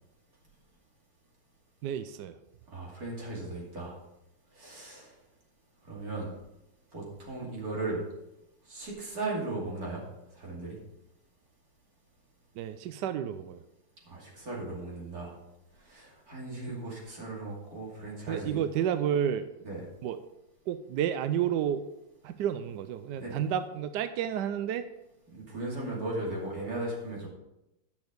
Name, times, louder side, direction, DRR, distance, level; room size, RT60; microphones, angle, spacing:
voice 1, 1.8-2.4 12.6-13.6 16.7-16.8 18.3-19.5 20.0-20.2 20.7-21.8 22.2-24.8, right 9 dB, 80° right, 10 dB, 0.9 m, -31 dB
voice 2, 2.7-3.9 4.5-5.1 5.9-6.3 6.9-8.0 8.7-10.0 10.3-10.8 14.1-15.3 15.9-18.6 19.6-19.8 23.2-23.3 25.3-27.3, right 2 dB, 45° right, -3 dB, 3.0 m, -37 dB
10.5 x 6.1 x 5.1 m, 0.91 s
omnidirectional pair, 2.3 m